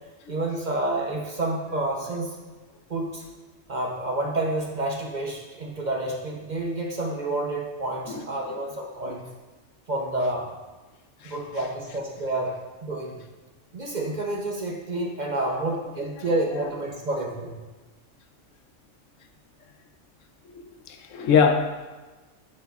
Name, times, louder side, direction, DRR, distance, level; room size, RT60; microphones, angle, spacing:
voice 1, 0.3-2.4 2.9-3.2 3.7-9.2 9.9-10.5 11.2-12.5 12.8-13.2 13.7-17.6, right 2 dB, 45° right, -1 dB, 0.7 m, -29 dB
voice 2, 20.9-21.9, left 6 dB, 80° left, 6 dB, 1.0 m, -22 dB
10.5 x 4.8 x 2.4 m, 1.2 s
omnidirectional pair, 1.3 m